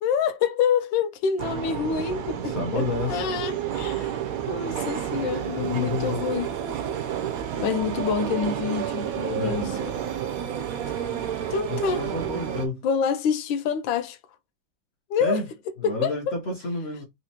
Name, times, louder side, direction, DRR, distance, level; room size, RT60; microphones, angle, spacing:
voice 1, 0.0-4.2 4.5-6.5 7.6-10.0 11.5-12.0 12.8-14.2 15.1-15.4 15.8-16.4, left 7 dB, 80° left, 1.3 m, -27 dB
sound 1, 1.4-12.7, right 9 dB, 85° right, 0.7 m, -30 dB
voice 2, 2.4-3.2 5.6-6.2 9.3-9.8 11.7-12.8 15.2-15.5 15.8-17.0, left 3 dB, 50° left, 0.7 m, -30 dB
4.2 x 2.5 x 2.7 m
omnidirectional pair, 2.1 m